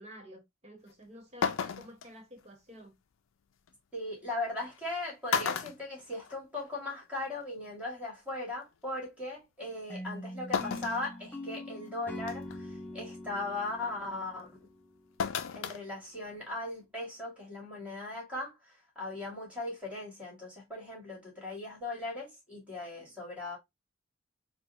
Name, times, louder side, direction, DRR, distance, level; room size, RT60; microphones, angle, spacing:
voice 1, 0.0-2.9, equal, 35° right, 0.9 m, -51 dB
sound 1, 0.9-1.0 1.4-2.1 3.7-3.8 4.8-4.9 5.3-6.7 7.0-7.1 8.3-8.4 10.5-11.0 11.6-11.7 12.3-12.6 15.2-15.8 16.1-16.2, left 6 dB, 75° left, 0.4 m, -33 dB
voice 2, 3.9-14.5 15.5-23.6, left 2 dB, 5° right, 2.1 m, -38 dB
sound 2, 9.9-15.0, left 1 dB, 10° left, 0.4 m, -43 dB
4.4 x 2.3 x 2.4 m
head